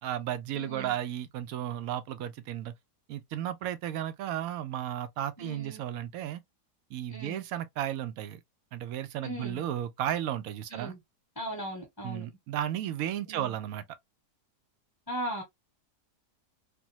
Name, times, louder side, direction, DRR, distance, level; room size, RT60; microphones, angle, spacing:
voice 1, 0.0-2.7 3.1-6.4 6.9-8.4 8.7-10.9 12.0-13.8, right 11 dB, 70° right, 0.9 m, -34 dB
voice 2, 0.5-0.9 5.4-5.8 7.1-7.4 9.2-9.6 10.7-11.0 11.4-12.3 13.3-13.5 15.1-15.4, right 1 dB, 15° left, 1.2 m, -38 dB
3.4 x 2.2 x 2.9 m
omnidirectional pair, 1.8 m